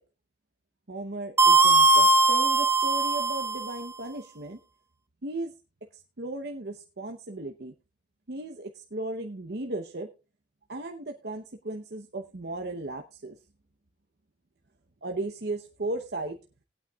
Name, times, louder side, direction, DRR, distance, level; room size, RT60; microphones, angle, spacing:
voice 1, 0.9-4.6 5.2-5.5 5.9-7.7 8.3-10.1 10.7-13.4 15.0-16.4, right 2 dB, 60° right, 4 dB, 0.9 m, -36 dB
sound 1, 1.4-3.7, right 2 dB, 15° right, 0.6 m, -20 dB
19.5 x 8.9 x 2.4 m, 0.30 s
head